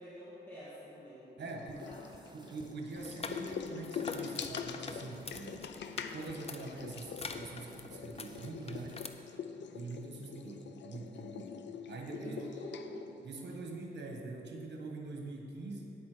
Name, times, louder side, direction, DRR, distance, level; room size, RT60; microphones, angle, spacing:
voice 1, 0.0-2.4 12.2-13.0, equal, 10° left, -10 dB, 2.1 m, -48 dB
sound 1, 1.4-13.6, left 7 dB, 85° left, 0.5 m, -44 dB
voice 2, 1.4-1.9 2.3-5.7 6.1-9.1 9.7-11.5 11.9-12.4 13.2-16.0, right 3 dB, 75° right, 1 dB, 1.4 m, -44 dB
sound 2, 1.7-9.1, right 4 dB, 25° right, 0.4 m, -58 dB
sound 3, 3.0-9.1, left 4 dB, 35° left, 0.6 m, -46 dB
9.6 x 8.4 x 5.0 m, 2.8 s
wide cardioid pair, 115°, 18 cm